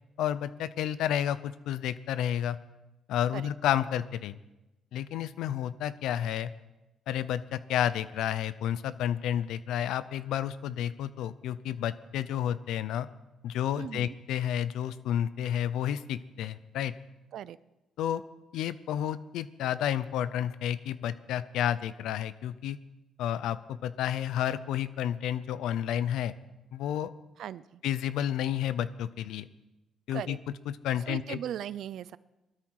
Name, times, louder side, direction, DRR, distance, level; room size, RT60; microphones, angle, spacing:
voice 1, 0.2-2.6 3.1-4.3 4.9-6.5 7.1-13.1 13.4-16.9 18.0-18.2 18.5-22.8 23.2-26.3 26.7-27.1 27.8-29.5 30.1-30.4 30.7-31.4, left 10 dB, 85° left, 15 dB, 0.7 m, -31 dB
voice 2, 13.8-14.2 17.3-17.6 27.4-27.8 30.1-30.4 31.1-32.2, right 10 dB, 75° right, 18 dB, 0.5 m, -38 dB
19.5 x 13.0 x 4.8 m, 1.0 s
cardioid pair, 90°, 0 cm